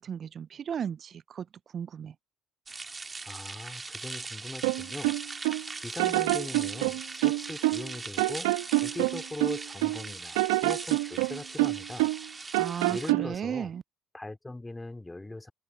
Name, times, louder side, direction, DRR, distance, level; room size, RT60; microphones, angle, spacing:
voice 1, 0.0-1.5 1.7-2.1 12.6-13.8, right 8 dB, 50° right, 0.7 m, -35 dB
sound 1, 2.7-13.1, right 3 dB, 25° right, 2.1 m, -40 dB
voice 2, 3.2-5.1 5.5-12.1 12.9-13.7 14.1-15.5, left 2 dB, 15° left, 2.8 m, -40 dB
sound 2, 4.6-5.6 6.0-7.9 8.2-10.0 10.3-12.3 12.5-13.3, right 23 dB, 80° right, 1.2 m, -27 dB
hypercardioid pair, 55°, 0 cm